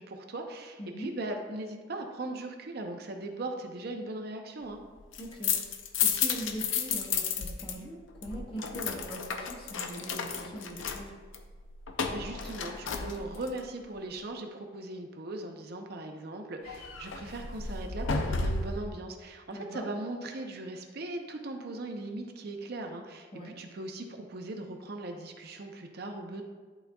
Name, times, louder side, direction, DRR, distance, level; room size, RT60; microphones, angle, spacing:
voice 1, 0.0-4.8 12.1-26.4, right 2 dB, 55° right, 3 dB, 0.6 m, -39 dB
voice 2, 0.8-1.1 5.2-5.6 6.0-11.2 19.5-19.9 23.3-23.6, right 1 dB, 30° left, -1 dB, 1.1 m, -41 dB
sound 1, 5.0-7.8 8.0-13.6 16.7-18.9, left 6 dB, 85° left, 0.6 m, -33 dB
11.0 x 4.0 x 2.3 m, 1.5 s
head